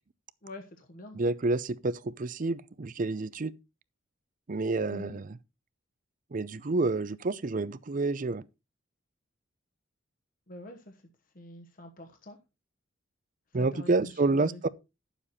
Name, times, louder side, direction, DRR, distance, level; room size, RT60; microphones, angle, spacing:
voice 1, 0.4-1.2 4.9-5.2 10.5-11.0 11.3-12.4 13.5-14.6, left 1 dB, 45° left, 1.1 m, -45 dB
voice 2, 1.1-3.5 4.5-5.3 6.3-8.4 13.5-14.7, right 3 dB, 40° right, 0.5 m, -29 dB
10.5 x 7.2 x 4.2 m
head